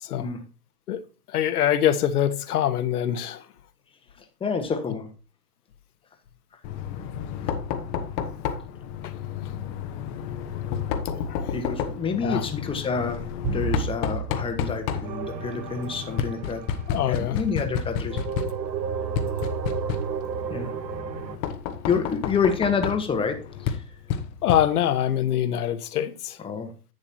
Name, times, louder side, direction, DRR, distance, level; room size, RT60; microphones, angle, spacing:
voice 1, 1.3-3.4 9.0-9.1 11.1-11.5 12.2-12.5 16.9-17.4 24.4-26.4, left 10 dB, 65° left, 1.2 m, -24 dB
voice 2, 4.4-5.1 11.5-13.3 13.5-16.6 17.1-18.2 20.5-20.7 21.9-23.8 26.4-26.7, left 5 dB, 10° left, 1.1 m, -28 dB
Knock, 6.6-25.1, left 7 dB, 30° left, 1.0 m, -31 dB
sound 1, 13.4-16.0, right 6 dB, 45° right, 4.6 m, -33 dB
sound 2, 15.0-17.5 18.1-21.4, right 7 dB, 85° right, 0.9 m, -32 dB
10.5 x 8.1 x 2.8 m
hypercardioid pair, 125°, 50 cm